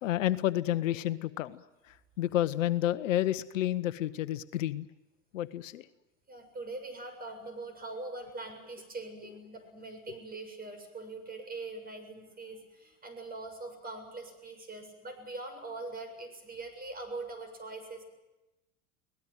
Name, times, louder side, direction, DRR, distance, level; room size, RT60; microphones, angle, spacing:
voice 1, 0.0-4.9 5.3-5.8, left 13 dB, 75° left, 14 dB, 1.0 m, -30 dB
voice 2, 6.3-18.0, right 2 dB, 25° right, 6 dB, 7.2 m, -42 dB
23.5 x 18.5 x 9.4 m, 1.0 s
hypercardioid pair, 90°, 39 cm